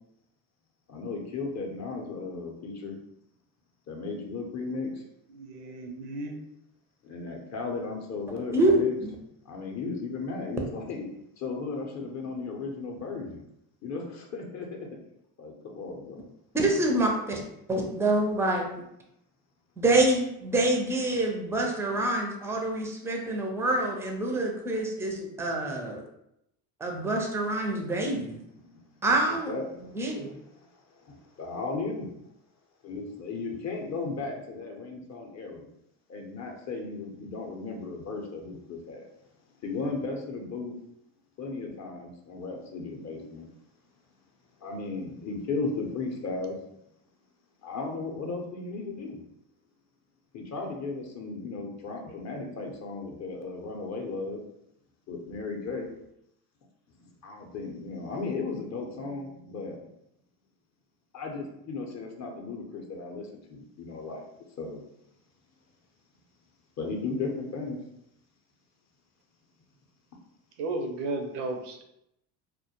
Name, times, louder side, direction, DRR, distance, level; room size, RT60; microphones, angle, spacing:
voice 1, 0.9-3.0 3.9-5.0 7.0-9.0 9.5-11.1 11.4-13.5 13.8-14.9 15.4-16.2 28.6-28.9 29.5-30.7 31.0-32.1 32.8-35.7 36.1-39.1 39.6-40.7 41.4-43.5 44.6-46.6 47.6-49.2 50.3-54.4 55.1-55.9 57.0-59.8 61.1-64.2 64.6-64.8 66.8-67.8, left 3 dB, 35° left, 1 dB, 0.6 m, -35 dB
voice 2, 5.3-6.4 52.1-52.5 70.6-71.8, right 2 dB, 85° right, 5 dB, 0.5 m, -35 dB
voice 3, 16.5-17.4 17.7-18.8 19.8-26.0 26.8-28.4 29.0-29.5 29.9-30.3, right 2 dB, 5° right, 1 dB, 0.4 m, -26 dB
2.1 x 2.1 x 2.8 m, 0.79 s
supercardioid pair, 80°, 46 cm